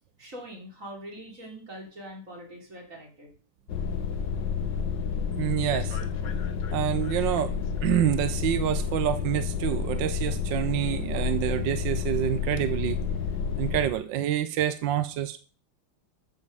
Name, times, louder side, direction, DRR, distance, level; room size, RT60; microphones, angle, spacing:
voice 1, 0.2-3.3, equal, 35° right, 0 dB, 4.6 m, -43 dB
sound 1, 3.7-13.9, left 6 dB, 60° left, 2.0 m, -30 dB
voice 2, 5.4-6.0 6.7-7.5 7.8-13.0 13.6-15.4, right 11 dB, 70° right, 12 dB, 1.4 m, -27 dB
13.0 x 8.2 x 7.0 m, 0.40 s
omnidirectional pair, 2.3 m